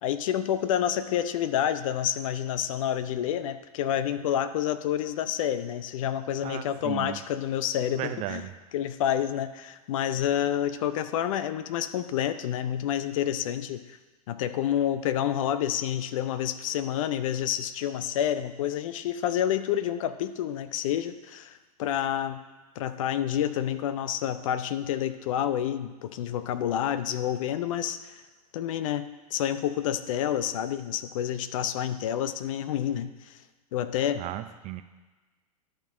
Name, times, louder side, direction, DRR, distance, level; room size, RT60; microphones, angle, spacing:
voice 1, 0.0-8.4 8.7-14.0 14.3-22.4 22.8-28.1 28.5-33.3 33.7-34.2, left 10 dB, 60° left, 12 dB, 0.6 m, -29 dB
voice 2, 6.4-7.2 8.0-8.5 34.2-34.8, right 14 dB, 35° right, 10 dB, 0.5 m, -35 dB
11.5 x 3.8 x 6.2 m, 1.2 s
figure-of-eight pair, 90°, 19 cm